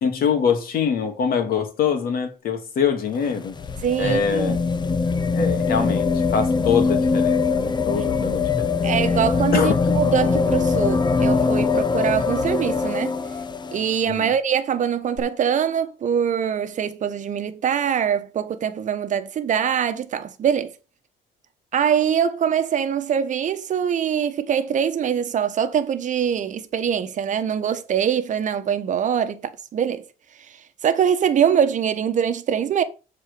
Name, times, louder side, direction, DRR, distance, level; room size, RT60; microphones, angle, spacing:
voice 1, 0.0-3.6 4.0-4.6 5.3-8.8 9.5-9.8 14.1-14.3, left 6 dB, 60° left, 2.1 m, -24 dB
sound 1, 3.0-14.0 15.2-15.3, left 4 dB, 25° left, 0.8 m, -22 dB
voice 2, 3.8-4.6 8.8-13.1 13.7-20.7 21.7-30.0 30.8-32.8, right 8 dB, 45° right, 1.1 m, -23 dB
7.5 x 4.3 x 6.7 m
cardioid pair, 110°, 17 cm